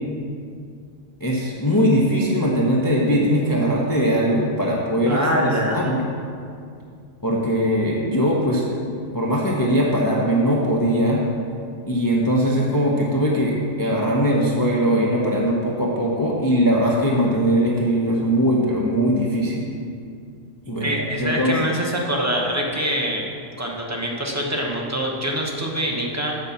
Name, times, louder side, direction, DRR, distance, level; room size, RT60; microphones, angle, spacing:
voice 1, 1.2-6.0 7.2-8.7 9.1-11.2 11.9-19.7 20.7-20.9 21.2-21.5, equal, 20° left, -4 dB, 0.7 m, -20 dB
voice 2, 5.1-5.9 20.8-23.3 23.6-26.4, equal, 15° right, -2 dB, 1.0 m, -25 dB
6.9 x 5.3 x 7.2 m, 2.3 s
omnidirectional pair, 1.3 m